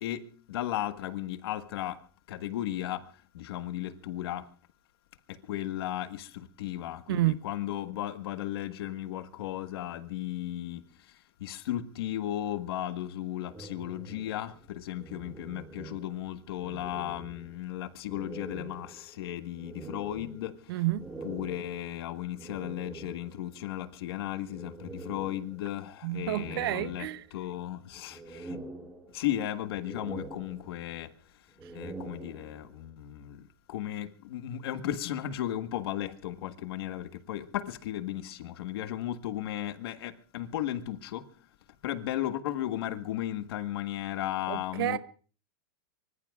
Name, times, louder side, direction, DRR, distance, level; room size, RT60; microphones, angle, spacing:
voice 1, 0.0-2.0 2.3-3.0 3.3-4.5 5.3-10.8 11.4-20.5 21.2-28.6 29.1-31.1 31.7-33.4 33.7-41.2 41.8-45.0, left 12 dB, 70° left, 1.6 m, -35 dB
sound 1, 13.5-16.3 16.6-17.7 18.1-23.5 24.5-25.8 26.2-27.5 27.9-29.4 29.7-31.0 31.5-32.8, right 3 dB, 10° right, 3.1 m, -45 dB
voice 2, 20.7-21.0 26.0-27.2 44.5-45.0, right 17 dB, 65° right, 0.9 m, -29 dB
24.5 x 24.0 x 2.5 m
supercardioid pair, 160°, 13 cm